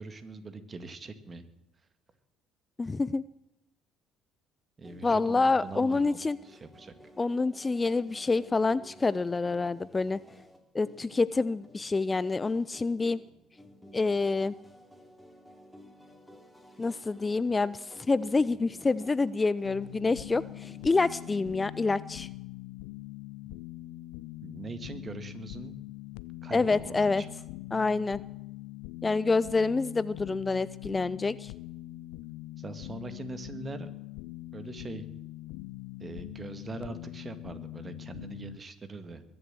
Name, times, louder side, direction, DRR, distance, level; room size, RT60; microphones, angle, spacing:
voice 1, 0.0-1.4 4.8-6.2 6.4-6.9 24.4-25.8 26.4-27.4 32.6-33.9 34.5-35.0 36.0-39.2, right 3 dB, 35° right, 11 dB, 2.0 m, -42 dB
voice 2, 2.8-3.2 5.0-6.4 7.2-10.2 10.7-13.2 13.9-14.5 16.8-22.3 26.5-27.2 27.7-28.2 29.0-31.5, left 3 dB, 25° left, 19 dB, 0.4 m, -27 dB
sound 1, 4.8-22.3, equal, 5° left, 3.3 m, -54 dB
sound 2, 19.6-38.6, left 18 dB, 75° left, 0.5 m, -43 dB
22.0 x 7.8 x 7.7 m, 0.89 s
hypercardioid pair, 60°, 0 cm